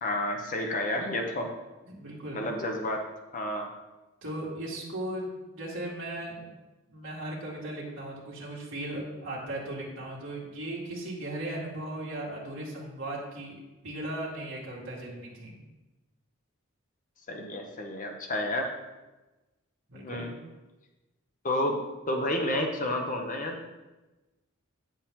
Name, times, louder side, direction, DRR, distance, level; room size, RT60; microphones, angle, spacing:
voice 1, 0.0-1.5 2.3-3.0 3.3-3.7 17.3-18.7 19.9-20.3 21.4-21.8 22.1-23.6, left 1 dB, 40° left, 3 dB, 1.0 m, -30 dB
voice 2, 1.9-2.4 4.2-6.5 6.9-15.6 19.9-20.3 21.7-21.8, right 1 dB, 65° right, -6 dB, 2.1 m, -37 dB
8.8 x 7.2 x 3.7 m, 1.1 s
head